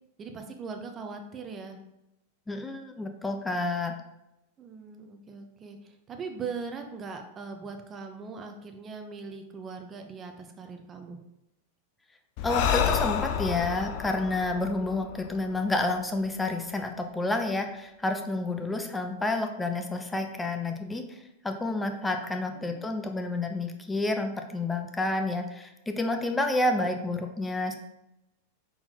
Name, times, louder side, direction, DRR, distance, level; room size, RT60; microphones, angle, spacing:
voice 1, 0.2-1.8 4.6-11.2 18.6-18.7 22.5-22.8, right 5 dB, 30° right, 5 dB, 0.7 m, -40 dB
voice 2, 2.5-3.9 12.4-21.2 21.4-27.8, left 2 dB, 10° left, 5 dB, 0.5 m, -29 dB
Breathing, 12.4-15.9, left 9 dB, 55° left, 0.5 m, -29 dB
4.2 x 3.9 x 2.9 m, 0.88 s
hypercardioid pair, 110°, 0 cm